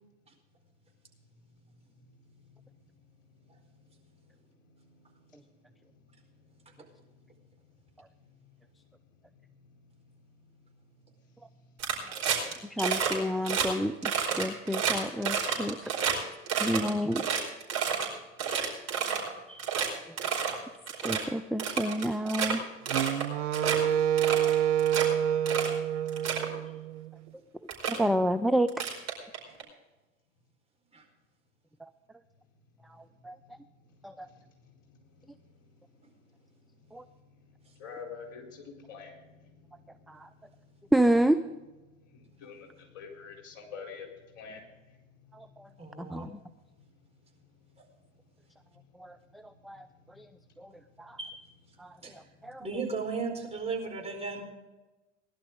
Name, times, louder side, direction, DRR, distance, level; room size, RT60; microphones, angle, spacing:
voice 1, 2.4-2.9 4.6-4.7 7.4-7.5 8.1-8.6 9.3-9.4 34.1-35.2 37.7-39.9 42.1-46.4 47.1-49.5 49.8-51.2 51.7-52.6, left 5 dB, 50° left, 1 dB, 4.4 m, -50 dB
sound 1, 11.8-12.5 12.8-13.1 13.4-13.7 14.0-16.1 16.5-18.1 18.4-19.3 19.6-19.9 20.2-20.5 20.9-21.2 21.6-22.5 22.9-23.2 23.5-23.8 24.2-25.0 25.5-25.7 26.1-26.5 27.3-27.4 27.7-28.0 28.7-29.6, right 7 dB, 45° right, 5.0 m, -30 dB
voice 2, 12.7-15.9 16.6-17.3 20.4-20.6 21.0-22.6 27.9-28.7 31.8-31.9 33.2-33.4 34.0-34.3 36.9-37.0 40.1-40.3 40.9-41.4 45.3-45.7 46.0-46.4 49.0-49.9 50.2-50.3 50.6-50.7 51.0-51.2 51.8-52.7, right 1 dB, ahead, 9 dB, 0.3 m, -29 dB
Wind instrument woodwind instrument, 22.9-27.1, right 10 dB, 80° right, 0.7 m, -27 dB
voice 3, 45.8-46.3 51.2-51.3 52.0-52.1 52.6-54.4, right 4 dB, 15° right, 0 dB, 4.5 m, -36 dB
19.0 x 11.5 x 3.8 m, 1.1 s
hypercardioid pair, 80°, 36 cm